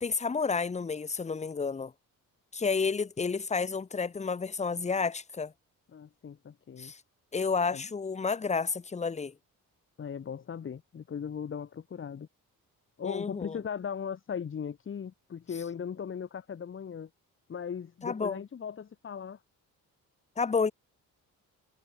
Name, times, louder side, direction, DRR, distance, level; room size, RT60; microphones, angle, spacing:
voice 1, 0.0-1.9 2.5-5.5 6.8-7.0 7.3-9.3 13.0-13.6 18.0-18.4 20.4-20.7, left 5 dB, 20° left, 0.8 m, -30 dB
voice 2, 5.9-6.9 7.7-7.9 10.0-12.3 13.0-17.1 17.5-19.4, left 7 dB, 35° left, 1.1 m, -38 dB
cardioid pair, 100°, 35 cm